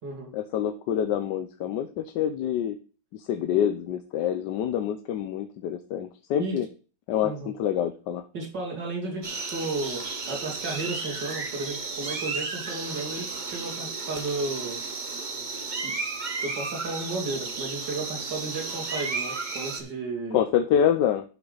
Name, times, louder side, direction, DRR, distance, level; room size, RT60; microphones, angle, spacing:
voice 1, 0.3-2.8 3.1-6.7 7.1-8.3 20.3-21.2, left 9 dB, 90° left, 8 dB, 1.3 m, -26 dB
voice 2, 8.3-9.3 9.5-14.8 15.8-15.9 16.4-20.4, right 3 dB, 90° right, -1 dB, 3.1 m, -33 dB
sound 1, 9.2-19.8, right 4 dB, 30° right, 1.0 m, -33 dB
11.0 x 5.9 x 3.9 m, 0.38 s
omnidirectional pair, 1.8 m